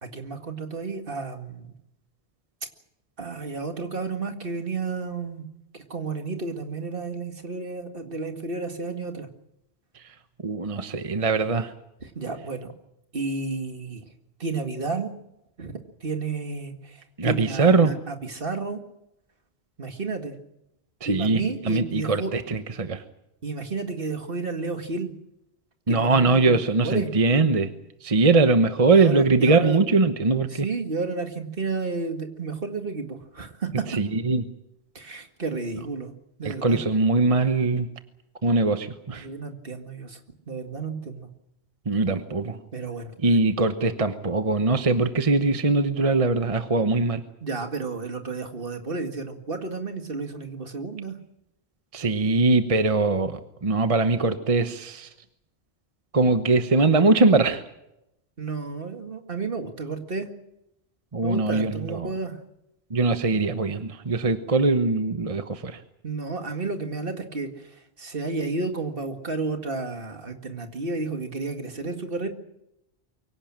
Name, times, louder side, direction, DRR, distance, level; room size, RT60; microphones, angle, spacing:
voice 1, 0.0-1.7 3.2-5.5 5.7-9.3 12.0-12.7 13.1-14.0 14.4-15.1 15.6-15.7 16.0-18.8 19.8-20.4 21.0-22.3 23.4-25.1 25.9-27.1 28.9-29.8 30.5-33.8 34.9-36.1 36.4-36.8 39.1-40.2 40.5-41.3 42.7-43.1 47.4-51.2 58.4-60.3 61.2-62.4 66.0-72.3, right 4 dB, 60° right, 5 dB, 2.2 m, -32 dB
voice 2, 10.4-11.7 17.2-17.9 21.0-21.4 21.7-23.0 25.9-27.7 28.0-30.7 33.9-34.4 36.4-37.9 38.4-39.3 41.9-42.6 43.2-47.2 51.9-55.1 56.1-57.6 61.1-62.1 62.9-65.8, right 3 dB, 35° right, 9 dB, 1.1 m, -21 dB
24.0 x 17.0 x 8.8 m, 0.85 s
omnidirectional pair, 1.1 m